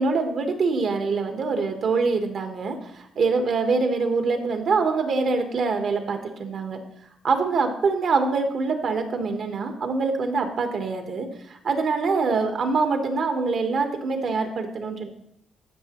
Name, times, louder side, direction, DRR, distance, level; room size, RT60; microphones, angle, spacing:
voice 1, 0.0-6.8 7.2-15.1, right 4 dB, 60° right, 5 dB, 1.4 m, -24 dB
14.5 x 6.1 x 3.1 m, 0.73 s
cardioid pair, 90°, 0 cm